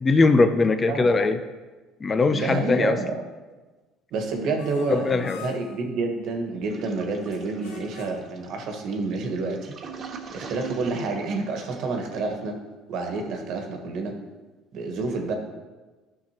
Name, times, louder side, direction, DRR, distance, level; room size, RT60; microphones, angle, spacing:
voice 1, 0.0-1.4 2.0-3.0 4.9-5.4, left 3 dB, 30° left, 9 dB, 0.6 m, -20 dB
voice 2, 2.3-3.2 4.1-9.8 10.3-12.6 12.9-14.2 14.7-15.3, right 3 dB, 65° right, 3 dB, 1.5 m, -29 dB
sound 1, 4.6-5.8 7.2-8.4, left 7 dB, 85° left, 1.0 m, -45 dB
Toilet flush, 6.7-12.4, right 6 dB, 50° right, 1.1 m, -43 dB
13.5 x 5.9 x 3.0 m, 1.3 s
supercardioid pair, 85°, 0 cm